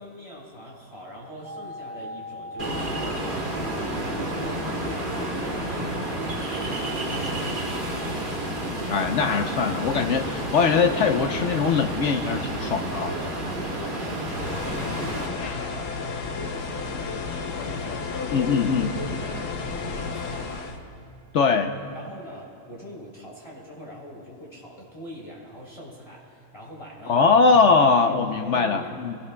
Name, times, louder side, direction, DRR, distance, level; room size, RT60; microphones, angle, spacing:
voice 1, 0.0-9.1 13.1-18.2 18.8-20.7 21.9-27.2 28.0-29.0, equal, 20° left, -4 dB, 3.3 m, -42 dB
sound 1, 1.4-3.1, left 1 dB, 80° right, 1.8 m, -38 dB
Ocean, 2.6-15.2, right 1 dB, 30° right, 2.4 m, -30 dB
voice 2, 8.9-13.1 18.3-18.9 21.3-21.7 27.1-29.2, left 5 dB, 60° left, 6 dB, 0.9 m, -21 dB
sound 2, 14.3-20.8, left 4 dB, 90° left, 1.5 m, -32 dB
22.5 x 18.0 x 2.2 m, 2.9 s
omnidirectional pair, 1.7 m